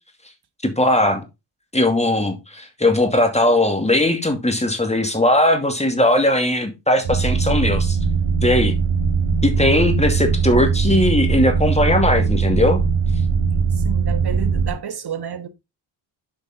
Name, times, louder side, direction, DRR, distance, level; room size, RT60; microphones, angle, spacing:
voice 1, 0.6-1.2 1.7-8.0 8.4-8.8 9.4-12.8, left 1 dB, 15° left, 2.5 m, -18 dB
sound 1, 7.0-14.7, right 5 dB, 75° right, 2.9 m, -20 dB
voice 2, 13.8-15.5, right 7 dB, 50° right, 1.3 m, -30 dB
8.6 x 5.2 x 3.6 m
cardioid pair, 60°, 50 cm